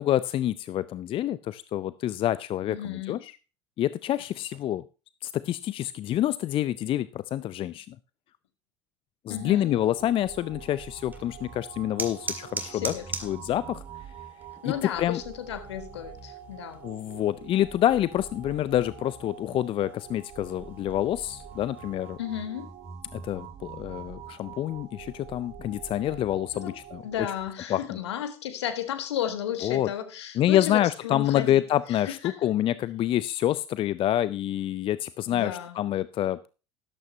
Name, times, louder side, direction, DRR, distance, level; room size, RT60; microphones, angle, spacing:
voice 1, 0.0-3.3 3.8-4.8 5.2-8.0 9.3-12.9 13.2-13.8 14.6-15.2 16.8-22.2 23.1-27.0 27.7-28.0 29.6-29.9 30.4-35.5 35.8-36.5, left 12 dB, 40° left, 0.4 m, -27 dB
voice 2, 2.7-3.2 9.3-9.8 12.7-13.3 14.6-16.8 22.2-22.8 26.5-26.7 27.0-31.6 31.9-32.5 35.3-35.8, left 10 dB, 70° left, 1.4 m, -34 dB
sound 1, 9.3-27.5, right 6 dB, 45° right, 2.6 m, -45 dB
sound 2, 10.9-22.1, right 3 dB, 15° right, 2.0 m, -43 dB
13.0 x 12.0 x 2.8 m
figure-of-eight pair, 65°, 14 cm